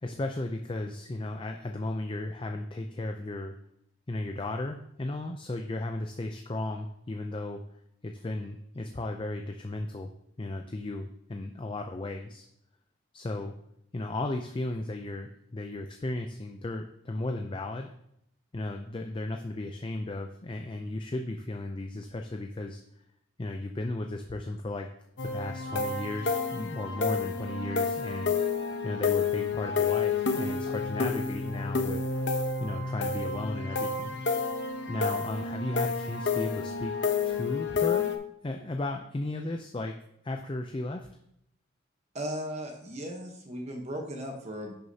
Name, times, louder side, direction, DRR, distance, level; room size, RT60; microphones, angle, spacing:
voice 1, 0.0-3.6 4.1-7.6 8.0-10.1 10.4-12.5 13.1-13.5 13.9-17.9 18.5-22.8 23.4-24.9 25.2-28.6 28.8-32.0 32.6-34.2 34.9-36.9 37.2-38.1 38.4-40.0 40.2-41.1, left 2 dB, 25° left, 4 dB, 0.4 m, -35 dB
sound 1, 25.2-38.2, left 5 dB, 60° left, 0.9 m, -30 dB
voice 2, 42.1-44.7, equal, 35° right, 2 dB, 1.0 m, -36 dB
10.5 x 6.4 x 2.8 m, 0.76 s
head